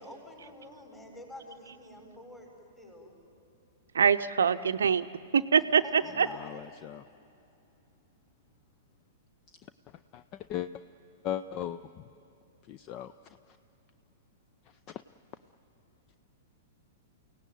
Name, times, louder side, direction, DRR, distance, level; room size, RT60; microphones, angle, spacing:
voice 1, 0.0-2.5 2.8-3.2 5.8-6.7, left 1 dB, 15° left, 1 dB, 6.3 m, -48 dB
voice 2, 3.9-5.0 5.3-6.3, right 7 dB, 70° right, 10 dB, 0.6 m, -24 dB
voice 3, 6.3-7.0 10.1-10.2 10.5-10.7 11.2-12.0 12.7-13.1 14.9-15.0, left 11 dB, 35° left, 13 dB, 0.6 m, -37 dB
29.0 x 17.0 x 9.3 m, 2.6 s
figure-of-eight pair, 105°, 0 cm